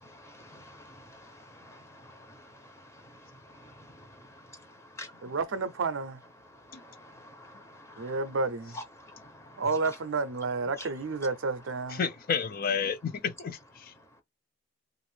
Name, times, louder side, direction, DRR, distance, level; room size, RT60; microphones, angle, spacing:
voice 1, 0.0-3.2 3.5-4.1 5.0-5.1 6.7-8.2 8.7-9.6 10.8-10.9, left 1 dB, 15° left, 0.7 m, -49 dB
voice 2, 5.2-6.2 8.0-8.8 9.6-12.0, right 3 dB, 70° right, 0.5 m, -30 dB
voice 3, 11.9-13.9, left 6 dB, 50° left, 0.4 m, -31 dB
2.5 x 2.5 x 3.2 m
head